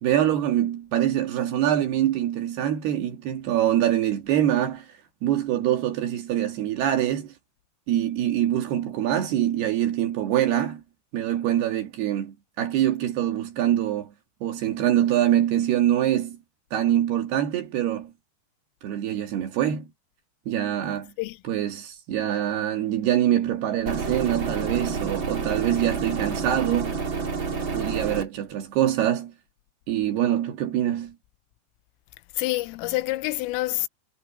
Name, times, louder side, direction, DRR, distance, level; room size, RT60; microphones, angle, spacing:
voice 1, 0.0-4.9 5.2-7.3 7.9-10.8 11.1-14.1 14.4-16.4 16.7-18.1 18.8-19.9 20.5-21.1 21.5-27.0 27.7-29.3 29.9-31.1, right 11 dB, 60° right, 3.2 m, -24 dB
sound 1, 23.9-28.3, right 5 dB, 30° right, 2.7 m, -29 dB
voice 2, 32.4-33.9, left 19 dB, 85° left, 3.3 m, -27 dB
omnidirectional pair, 5.9 m